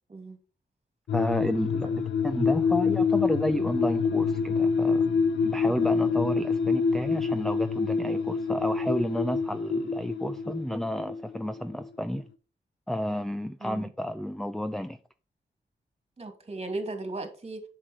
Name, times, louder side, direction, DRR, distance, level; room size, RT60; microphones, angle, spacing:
sound 1, 1.1-11.9 12.1-12.2, left 5 dB, 90° left, 0.7 m, -27 dB
voice 1, 1.1-5.1 5.4-12.2 12.9-15.0, equal, ahead, 0.5 m, -31 dB
voice 2, 5.6-6.1 13.6-13.9 16.2-17.6, right 2 dB, 35° right, 2.5 m, -37 dB
7.5 x 6.5 x 4.8 m
cardioid pair, 75°, 19 cm